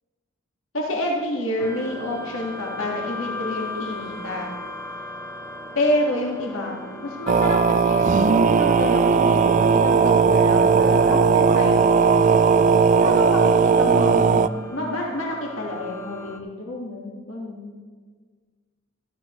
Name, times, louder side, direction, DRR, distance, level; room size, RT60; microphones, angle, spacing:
voice 1, 0.7-4.5 5.8-12.2 13.0-17.7, left 1 dB, 85° left, -2 dB, 1.9 m, -28 dB
sound 1, 1.6-16.4, left 2 dB, 15° left, 0.9 m, -37 dB
sound 2, 7.3-14.5, right 5 dB, 40° right, 0.3 m, -17 dB
14.5 x 13.0 x 3.2 m, 1.5 s
head